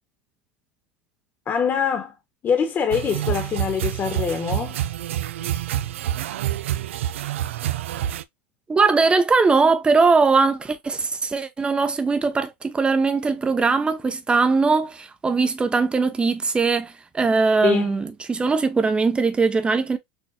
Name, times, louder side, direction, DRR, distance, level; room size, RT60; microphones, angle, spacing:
voice 1, 1.5-2.1 2.4-4.8 17.6-18.0, left 7 dB, 30° left, 1.2 m, -24 dB
sound 1, 2.9-8.2, right 12 dB, 90° right, 0.4 m, -27 dB
voice 2, 8.7-20.0, right 4 dB, 15° right, 0.8 m, -20 dB
6.4 x 2.4 x 2.6 m
supercardioid pair, 115°, 7 cm